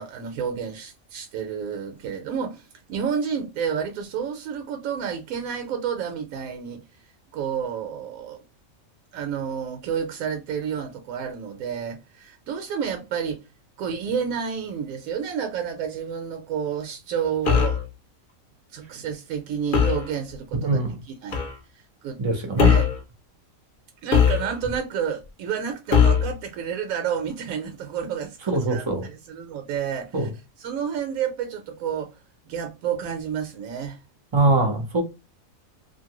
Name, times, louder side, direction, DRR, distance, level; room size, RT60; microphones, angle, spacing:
voice 1, 0.0-6.8 7.3-8.4 9.1-13.5 13.8-17.8 18.7-21.5 22.0-22.2 22.6-22.9 24.0-30.3 30.6-32.2 32.5-34.0, right 7 dB, 80° right, 1.0 m, -30 dB
sound 1, 17.5-17.8 19.7-20.1 21.3-21.5 22.6-23.0 24.1-24.8 25.9-26.3, left 7 dB, 55° left, 0.6 m, -19 dB
voice 2, 20.6-20.9 22.2-22.7 28.5-29.1 30.1-30.2 34.3-35.0, right 2 dB, 45° right, 0.4 m, -22 dB
2.7 x 2.5 x 2.9 m
omnidirectional pair, 1.4 m